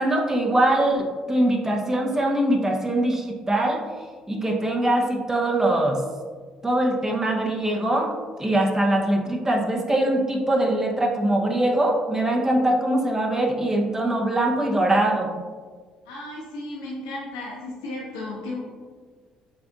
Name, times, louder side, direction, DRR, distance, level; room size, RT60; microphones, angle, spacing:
voice 1, 0.0-3.8 4.3-6.0 6.6-8.1 8.4-15.3, right 1 dB, 20° right, 0 dB, 0.8 m, -22 dB
voice 2, 16.0-18.6, left 2 dB, 90° left, -5 dB, 1.0 m, -34 dB
7.5 x 2.5 x 2.4 m, 1.5 s
hypercardioid pair, 55°, 3 cm